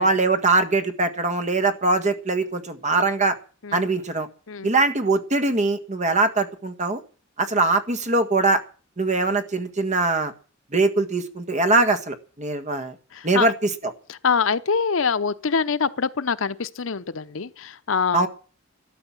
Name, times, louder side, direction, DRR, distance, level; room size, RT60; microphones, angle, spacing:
voice 1, 0.0-3.3 3.7-4.3 4.6-7.0 7.4-8.6 9.0-10.3 10.7-12.9 13.2-13.9 18.1-18.3, right 3 dB, 35° right, 1.6 m, -22 dB
voice 2, 13.1-13.5 14.1-18.3, left 5 dB, 70° left, 0.8 m, -24 dB
13.0 x 12.5 x 7.3 m
head